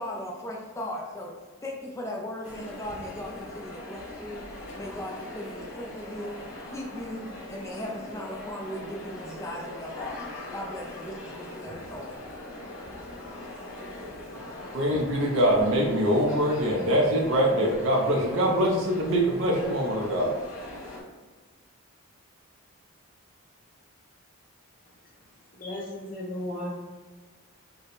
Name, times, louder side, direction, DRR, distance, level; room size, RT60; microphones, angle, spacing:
voice 1, 0.0-1.3 1.6-6.3 6.7-12.2, equal, 15° left, -2 dB, 0.4 m, -38 dB
sound 1, 2.4-21.0, left 1 dB, 60° left, 1.0 m, -41 dB
voice 2, 14.7-20.4, equal, 55° right, -2 dB, 0.5 m, -23 dB
voice 3, 25.5-26.7, left 1 dB, 40° left, -4 dB, 0.9 m, -35 dB
3.4 x 2.1 x 3.9 m, 1.4 s
head